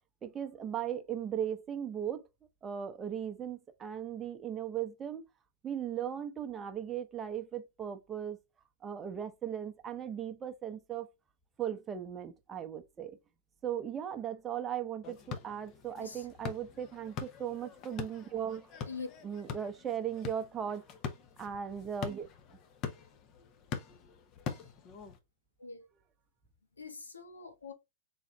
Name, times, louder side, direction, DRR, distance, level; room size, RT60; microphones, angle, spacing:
voice 1, 0.2-2.2 2.6-5.2 5.6-8.4 8.8-11.1 11.6-13.2 13.6-18.7 19.2-20.8 21.4-22.3, right 9 dB, 20° right, 0.7 m, -37 dB
sound 1, 15.0-25.2, left 6 dB, 40° left, 0.7 m, -44 dB
voice 2, 26.8-27.7, left 4 dB, 90° left, 0.8 m, -43 dB
3.7 x 3.3 x 3.1 m
hypercardioid pair, 105°, 0 cm